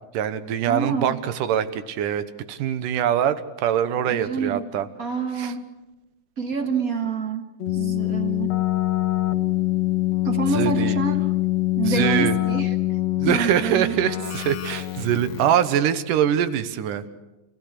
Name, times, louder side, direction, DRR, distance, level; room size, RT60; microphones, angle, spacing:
voice 1, 0.1-4.9 5.4-5.5 10.4-11.0 11.8-12.4 13.2-17.1, right 9 dB, 85° right, 12 dB, 2.7 m, -23 dB
voice 2, 0.7-1.2 4.1-4.7 5.0-5.7 6.4-8.5 10.2-11.2 11.8-12.7 13.2-13.9, right 5 dB, 35° right, 6 dB, 1.5 m, -27 dB
Keyboard (musical), 7.6-15.7, left 17 dB, 65° left, 2.0 m, -24 dB
29.0 x 16.5 x 8.2 m, 1.1 s
omnidirectional pair, 3.7 m